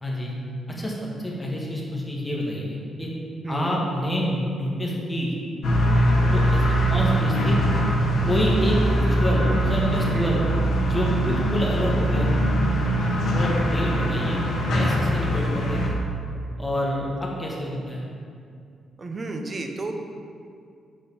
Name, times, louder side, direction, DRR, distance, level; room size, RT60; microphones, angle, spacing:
voice 1, 0.0-0.3 0.7-3.1 3.5-5.3 6.3-7.6 8.3-10.4 10.8-12.3 13.3-14.4 14.7-16.0 16.6-18.0, equal, 10° left, -3 dB, 1.2 m, -27 dB
voice 2, 3.4-3.8 10.1-10.4 19.0-19.9, right 3 dB, 25° right, 4 dB, 0.6 m, -32 dB
sound 1, 5.6-15.9, right 1 dB, 70° left, 1.2 m, -22 dB
7.7 x 4.3 x 5.4 m, 2.3 s
cardioid pair, 160°, 0 cm